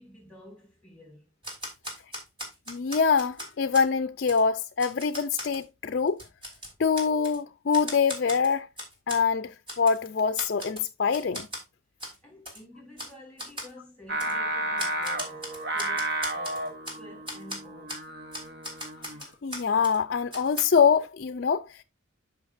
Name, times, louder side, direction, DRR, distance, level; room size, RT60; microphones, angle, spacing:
voice 1, 0.0-1.3 12.2-18.1, left 1 dB, 5° left, 3.6 m, -50 dB
Typewriter, 1.4-3.9 4.3-4.4 4.8-5.6 6.1-7.4 7.7-9.2 9.7-10.0 10.4-10.9 11.1-11.6 12.0-12.2 12.5-12.6 13.0-13.1 13.4-13.7 14.2-14.3 14.8-17.0 17.3-17.6 17.9-18.0 18.3-20.0 20.3-20.6, equal, 25° right, 3.1 m, -38 dB
voice 2, 2.7-6.2 6.8-8.7 9.1-11.5 19.4-21.8, left 6 dB, 50° left, 0.4 m, -25 dB
Singing, 14.1-19.3, right 2 dB, 50° right, 1.0 m, -32 dB
13.0 x 5.6 x 2.5 m
head